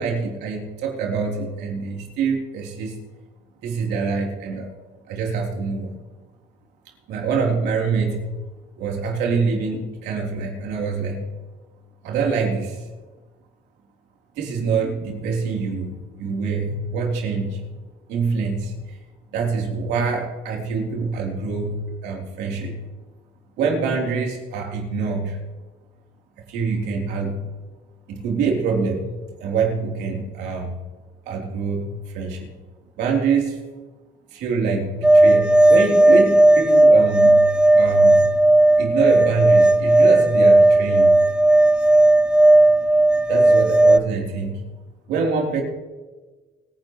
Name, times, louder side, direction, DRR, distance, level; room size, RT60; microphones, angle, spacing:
voice 1, 0.0-3.0 3.6-4.7 5.1-6.0 7.1-8.3 8.8-11.3 12.0-12.8 14.4-17.6 18.1-19.0 19.3-22.8 23.6-25.4 26.5-27.5 28.1-29.1 29.4-30.8 31.3-32.5 33.0-33.6 34.3-38.2 38.8-41.2 43.3-44.6 45.1-45.6, right 5 dB, 90° right, 0 dB, 3.6 m, -25 dB
sound 1, 35.0-44.0, right 1 dB, 5° right, 0.5 m, -14 dB
24.5 x 10.5 x 3.2 m, 1.3 s
cardioid pair, 110°, 17 cm